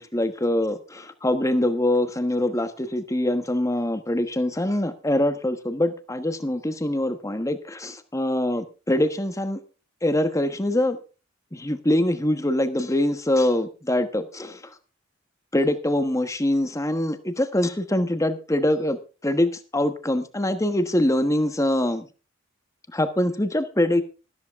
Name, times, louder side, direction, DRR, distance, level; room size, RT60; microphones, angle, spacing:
voice 1, 0.0-9.6 10.0-11.0 11.5-14.6 15.5-22.1 22.9-24.0, left 1 dB, 15° left, 10 dB, 1.2 m, -24 dB
13.5 x 13.0 x 3.6 m, 0.33 s
head